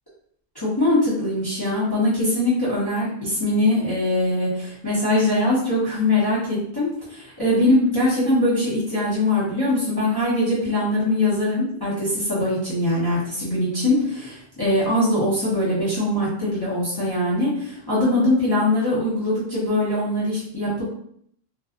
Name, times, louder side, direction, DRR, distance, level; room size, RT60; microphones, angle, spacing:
voice 1, 0.5-20.8, left 1 dB, 20° left, -10 dB, 0.8 m, -22 dB
2.7 x 2.2 x 2.4 m, 0.66 s
omnidirectional pair, 1.3 m